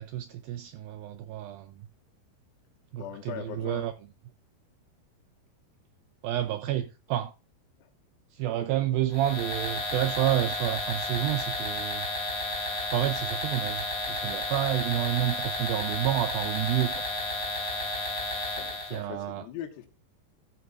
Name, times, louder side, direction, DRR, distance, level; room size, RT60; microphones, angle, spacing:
voice 1, 0.0-1.9 2.9-3.9 6.2-7.3 8.3-12.1 12.9-17.1 18.9-19.5, right 13 dB, 85° right, 2.1 m, -29 dB
voice 2, 3.0-3.9 6.7-6.8 18.6-19.9, left 10 dB, 80° left, 3.4 m, -40 dB
sound 1, 9.1-19.0, left 2 dB, 30° left, 2.4 m, -32 dB
15.5 x 8.0 x 2.4 m
omnidirectional pair, 4.8 m